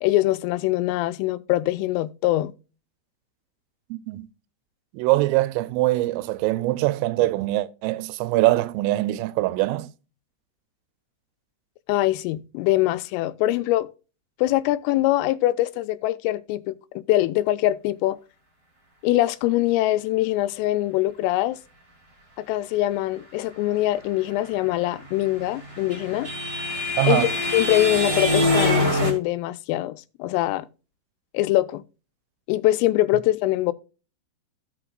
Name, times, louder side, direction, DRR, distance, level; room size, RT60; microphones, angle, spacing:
voice 1, 0.0-2.5 11.9-13.9 14.4-18.2 19.0-21.6 22.4-26.3 27.0-30.7 31.3-31.8 32.5-33.7, left 15 dB, 90° left, 3.2 m, -23 dB
voice 2, 3.9-4.2 4.9-9.9 27.0-27.3, right 18 dB, 90° right, 3.2 m, -23 dB
sound 1, 25.2-29.1, left 1 dB, 25° right, 1.8 m, -24 dB
15.5 x 5.8 x 2.3 m
omnidirectional pair, 5.7 m